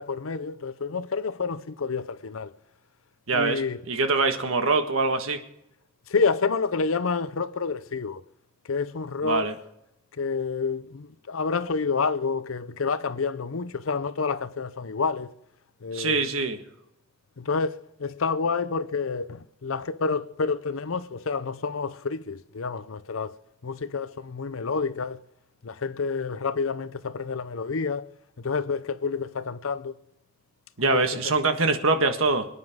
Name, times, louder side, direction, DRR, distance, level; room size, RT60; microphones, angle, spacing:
voice 1, 0.0-2.5 3.3-3.8 6.1-8.2 8.7-9.5 10.1-15.3 15.8-16.3 17.4-23.4 23.6-25.2 25.6-28.0 28.4-29.9 30.8-31.0, left 4 dB, 75° left, 0.7 m, -29 dB
voice 2, 3.3-3.6 3.9-5.4 9.2-9.5 15.9-16.6 30.8-32.5, right 3 dB, 85° right, 1.5 m, -23 dB
24.5 x 9.9 x 3.7 m
head